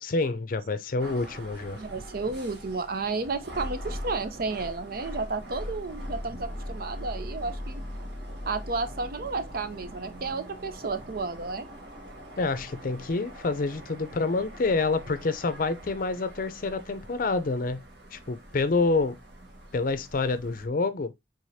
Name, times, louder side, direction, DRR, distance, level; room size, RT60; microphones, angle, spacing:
voice 1, 0.0-1.8 12.4-17.8 18.1-19.2 19.7-21.1, left 3 dB, 50° left, 0.5 m, -27 dB
sound 1, 1.0-20.7, equal, 70° right, 1.6 m, -41 dB
voice 2, 1.8-7.8 8.5-11.7, right 3 dB, 55° right, 0.6 m, -32 dB
4.9 x 3.8 x 2.7 m
head